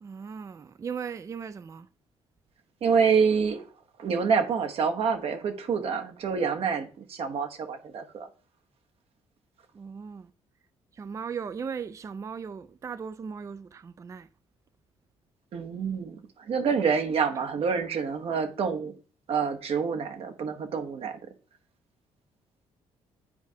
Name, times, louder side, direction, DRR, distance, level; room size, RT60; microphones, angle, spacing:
voice 1, 0.0-1.9 9.7-10.3 11.0-14.3, right 6 dB, 30° right, 0.3 m, -37 dB
voice 2, 2.8-3.6 4.0-8.3 15.5-18.9 19.3-21.2, right 6 dB, 60° right, 0.9 m, -27 dB
9.6 x 4.7 x 2.7 m
cardioid pair, 105°, 11 cm